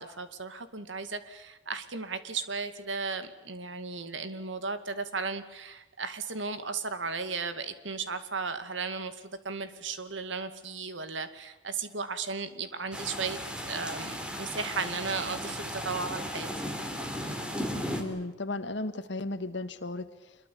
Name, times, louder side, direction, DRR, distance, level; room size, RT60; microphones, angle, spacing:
voice 1, 0.0-16.5, right 4 dB, 85° right, 10 dB, 2.4 m, -35 dB
sound 1, 12.9-18.0, equal, 5° right, 3.4 m, -35 dB
voice 2, 18.0-20.4, left 2 dB, 70° left, 9 dB, 1.8 m, -35 dB
26.5 x 22.5 x 8.7 m, 1.0 s
head